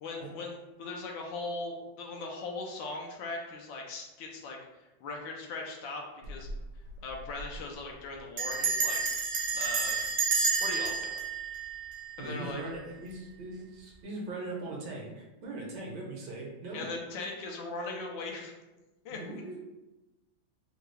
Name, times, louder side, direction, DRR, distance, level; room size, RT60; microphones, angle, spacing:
voice 1, 0.0-6.5 7.0-10.0 10.6-11.2 12.2-12.6 16.7-18.5 19.0-19.6, left 3 dB, 75° left, 0 dB, 1.3 m, -39 dB
Bell, 6.2-6.6 6.9-7.0 7.2-7.6 8.4-12.5, right 5 dB, 85° right, 0.6 m, -30 dB
voice 2, 12.2-16.9 19.1-19.6, right 2 dB, 70° right, -2 dB, 1.2 m, -40 dB
3.6 x 2.3 x 3.1 m, 1.1 s
omnidirectional pair, 2.1 m